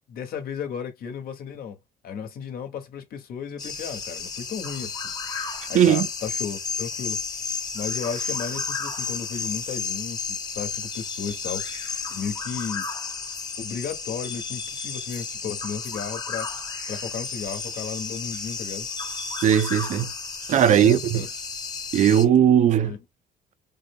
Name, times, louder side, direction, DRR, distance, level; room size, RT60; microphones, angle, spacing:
voice 1, 0.1-1.8 2.0-5.1 5.7-11.6 12.1-12.9 13.6-16.5 16.9-18.9 20.7-21.3 22.8-23.0, left 7 dB, 60° left, 1.1 m, -34 dB
sound 1, 3.6-22.3, left 5 dB, 25° left, 1.1 m, -32 dB
voice 2, 5.7-6.1 19.4-20.1 20.5-21.3 21.9-22.9, right 9 dB, 45° right, 0.5 m, -18 dB
3.7 x 2.0 x 3.6 m
cardioid pair, 110°, 17 cm